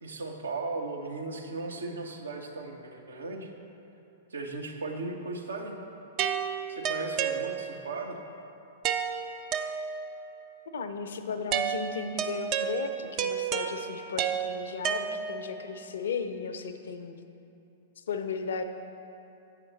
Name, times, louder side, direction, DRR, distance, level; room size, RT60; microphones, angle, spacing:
voice 1, 0.0-3.5 4.3-5.8 6.7-8.2, right 3 dB, 70° right, 3 dB, 0.7 m, -36 dB
sound 1, 6.2-8.0 8.8-10.3 11.5-15.6, right 7 dB, 35° right, 0.4 m, -31 dB
voice 2, 10.7-17.2 18.0-18.6, left 5 dB, 65° left, 8 dB, 0.5 m, -35 dB
8.2 x 5.7 x 4.0 m, 2.8 s
figure-of-eight pair, 100°, 0 cm